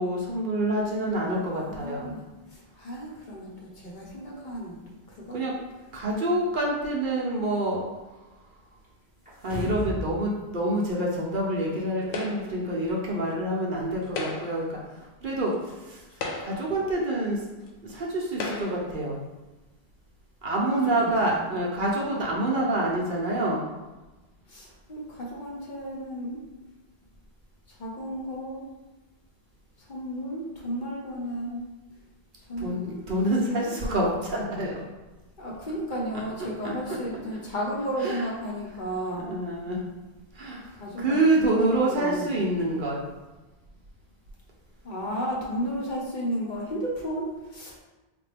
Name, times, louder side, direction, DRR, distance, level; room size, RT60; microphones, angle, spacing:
voice 1, 0.0-2.2 5.3-5.6 5.9-7.9 9.4-14.8 15.2-15.5 15.9-16.0 16.4-17.4 17.8-19.2 20.4-23.7 32.6-34.8 36.6-37.0 38.0-38.2 39.2-39.8 40.3-40.7 41.0-43.1, right 1 dB, 55° right, -3 dB, 0.8 m, -27 dB
voice 2, 1.1-2.2 2.5-5.4 20.9-21.6 24.5-26.4 27.7-28.6 29.8-31.6 32.4-33.0 33.4-33.7 35.4-39.3 40.7-42.3 44.8-47.8, equal, 50° left, -4 dB, 0.9 m, -34 dB
sound 1, 9.3-10.1 10.5-10.6, right 1 dB, 10° right, 0.8 m, -33 dB
sound 2, 12.1-12.7 14.0-14.7 15.5-15.6 16.1-16.8 17.7-17.8 18.3-18.9, left 3 dB, 80° left, 0.9 m, -34 dB
4.2 x 2.2 x 3.3 m, 1.1 s
omnidirectional pair, 1.1 m